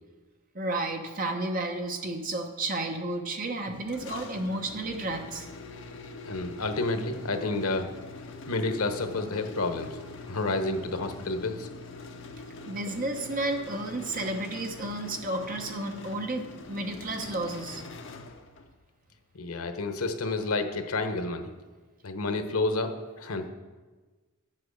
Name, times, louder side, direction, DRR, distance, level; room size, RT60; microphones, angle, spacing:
voice 1, 0.5-5.5 12.7-17.8, right 2 dB, 40° right, 4 dB, 1.0 m, -32 dB
sound 1, 3.9-18.8, left 3 dB, 60° left, 0.8 m, -44 dB
voice 2, 6.3-7.9 8.5-11.7 19.3-21.5 22.0-23.5, left 3 dB, 85° left, 8 dB, 1.0 m, -30 dB
9.1 x 7.7 x 6.4 m, 1.3 s
head